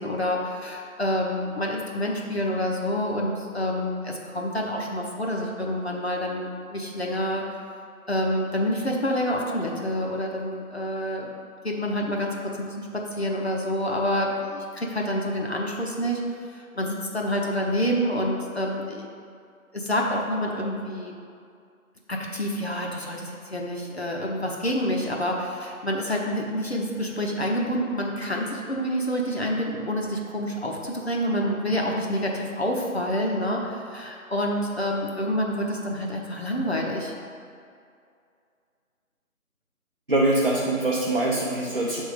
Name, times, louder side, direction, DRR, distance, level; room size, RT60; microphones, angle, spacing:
voice 1, 0.0-7.4 8.1-11.3 11.6-16.2 16.5-19.1 19.7-21.1 22.1-37.1, equal, 45° left, -1 dB, 0.8 m, -27 dB
voice 2, 40.1-42.0, right 2 dB, 40° right, -6 dB, 0.7 m, -23 dB
6.7 x 3.6 x 5.0 m, 2.3 s
figure-of-eight pair, 170°, 43 cm